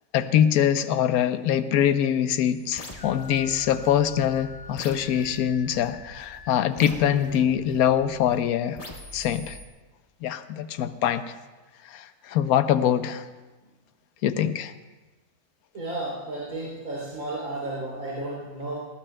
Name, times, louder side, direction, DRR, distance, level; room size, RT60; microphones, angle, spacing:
voice 1, 0.1-8.8 9.1-9.6 10.2-11.2 11.8-13.3 14.2-14.7, left 10 dB, 80° left, 12 dB, 1.1 m, -23 dB
sound 1, 2.7-8.4 8.8-9.7, left 2 dB, 25° left, 1.2 m, -43 dB
voice 2, 15.7-18.8, right 2 dB, 75° right, -5 dB, 3.7 m, -33 dB
19.5 x 17.0 x 2.2 m, 1.2 s
omnidirectional pair, 1.6 m